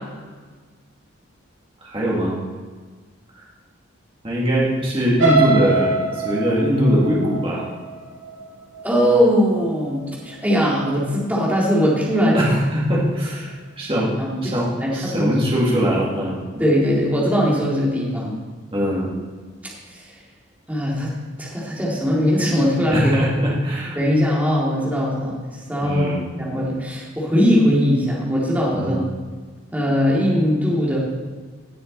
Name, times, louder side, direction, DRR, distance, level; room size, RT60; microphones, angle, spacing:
voice 1, 1.8-2.4 3.4-3.5 4.2-7.7 12.3-16.6 18.7-19.1 22.9-24.0 25.8-26.2 28.7-29.1, equal, 25° right, -5 dB, 2.2 m, -21 dB
sound 1, 5.2-9.2 9.6-9.9 10.3-10.4, right 3 dB, 75° right, 2.6 m, -23 dB
voice 2, 8.8-12.5 14.2-14.5 14.8-15.4 16.6-18.3 19.9-20.0 20.7-21.1 21.4-23.1 24.0-29.0 29.7-31.0, equal, 10° right, -5 dB, 2.2 m, -20 dB
17.0 x 6.4 x 4.0 m, 1.4 s
head